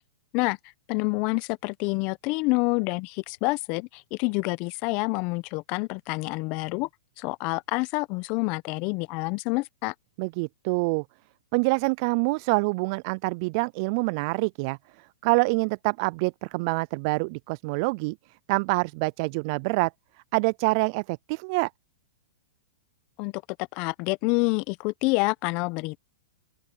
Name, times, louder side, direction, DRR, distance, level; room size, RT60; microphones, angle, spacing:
voice 1, 0.9-6.9 7.2-9.9 23.2-23.3 23.6-26.0, left 27 dB, 40° left, 1.0 m, -27 dB
voice 2, 10.2-11.0 11.5-18.2 18.5-19.9 20.3-21.7, right 29 dB, 45° right, 0.4 m, -26 dB
open air
hypercardioid pair, 120°, 3 cm